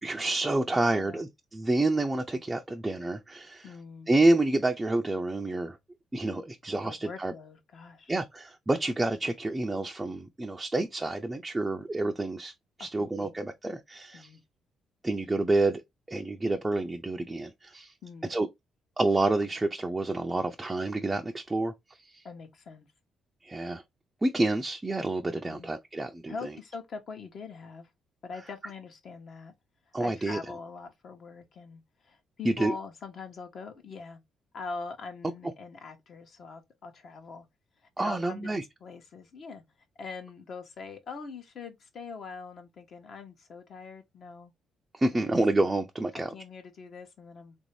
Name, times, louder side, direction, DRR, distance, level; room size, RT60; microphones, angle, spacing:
voice 1, 0.0-3.7 4.1-5.8 6.1-7.3 8.1-12.5 12.8-14.3 15.0-15.8 16.1-17.9 18.3-18.5 19.0-21.7 22.0-22.2 23.4-23.8 24.2-26.5 29.9-30.4 32.5-32.7 38.0-38.6 44.9-46.3, right 2 dB, 15° right, 0.4 m, -28 dB
voice 2, 0.7-1.2 3.6-4.1 6.8-8.1 13.0-13.3 14.1-14.4 18.0-18.3 22.2-22.9 25.5-25.7 26.3-27.9 28.2-29.5 30.0-34.2 34.5-37.5 38.0-39.6 40.0-44.5 45.1-45.4 46.1-47.6, left 4 dB, 60° left, 0.9 m, -43 dB
3.3 x 2.6 x 3.1 m
cardioid pair, 90°, 0 cm